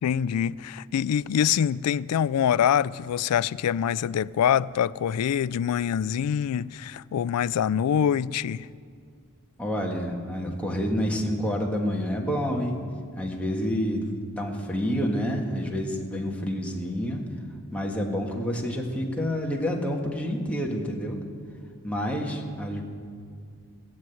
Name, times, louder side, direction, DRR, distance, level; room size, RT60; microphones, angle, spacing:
voice 1, 0.0-8.7, left 8 dB, 85° left, 0.3 m, -25 dB
voice 2, 9.6-12.8 13.2-14.1 14.4-17.2 17.7-21.2 21.8-22.8, equal, 5° left, 1.7 m, -28 dB
16.0 x 7.6 x 9.2 m
head